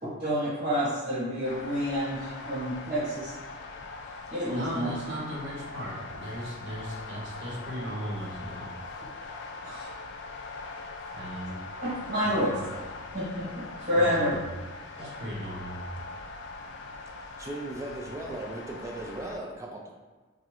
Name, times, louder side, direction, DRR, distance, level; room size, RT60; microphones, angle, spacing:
voice 1, 0.0-3.3 4.3-4.9 9.6-9.9 11.8-12.5 13.1-14.4 15.0-15.1, equal, 35° right, -10 dB, 1.2 m, -29 dB
sound 1, 1.4-19.4, left 3 dB, 60° left, 0.3 m, -42 dB
voice 2, 4.5-8.7 11.1-11.6 12.2-12.7 13.9-14.4 15.2-15.8, equal, 60° right, -5 dB, 0.7 m, -37 dB
voice 3, 17.0-19.9, right 2 dB, 15° right, -1 dB, 0.4 m, -38 dB
3.5 x 2.0 x 3.0 m, 1.3 s
head